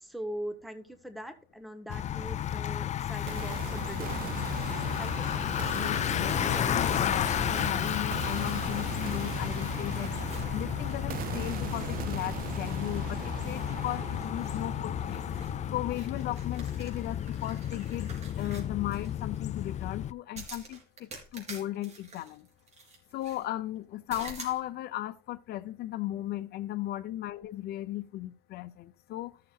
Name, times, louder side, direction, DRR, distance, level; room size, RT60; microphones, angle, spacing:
voice 1, 0.0-4.1 4.8-5.7 26.0-26.1, equal, ahead, 1.2 m, -42 dB
Bicycle, 1.9-20.1, left 10 dB, 45° left, 0.5 m, -32 dB
sound 1, 3.3-17.2, right 13 dB, 60° right, 0.4 m, -40 dB
voice 2, 5.7-10.1 10.5-15.3 15.7-22.5 23.1-29.3, left 14 dB, 70° left, 0.8 m, -36 dB
sound 2, 6.3-9.5 9.9-11.2 11.5-13.0 13.4-19.4 20.3-23.5 24.1-24.6, right 3 dB, 40° right, 4.1 m, -50 dB
14.5 x 6.8 x 2.5 m
cardioid pair, 110°, 17 cm